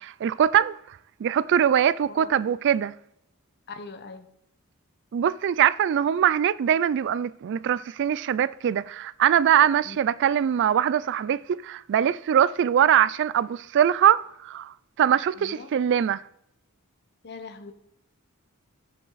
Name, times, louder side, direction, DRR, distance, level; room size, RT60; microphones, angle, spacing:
voice 1, 0.0-2.9 5.1-16.2, right 9 dB, 55° right, 0.3 m, -22 dB
voice 2, 3.7-4.3 9.8-10.0 15.4-15.7 17.2-17.7, left 4 dB, 50° left, 1.0 m, -41 dB
15.0 x 5.8 x 4.0 m
head